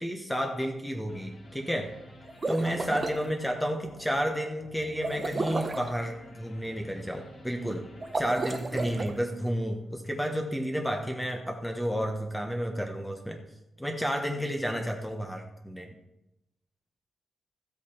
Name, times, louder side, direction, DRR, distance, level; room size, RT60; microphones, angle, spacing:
voice 1, 0.0-1.9 2.5-7.9 8.2-13.4 13.8-15.9, equal, 5° left, 3 dB, 1.0 m, -31 dB
sound 1, 1.1-10.1, left 1 dB, 45° left, 2.6 m, -51 dB
sound 2, 2.2-3.2 5.0-5.9 8.0-9.1, right 3 dB, 25° right, 0.8 m, -32 dB
13.5 x 8.1 x 4.4 m, 0.91 s
wide cardioid pair, 165°, 0 cm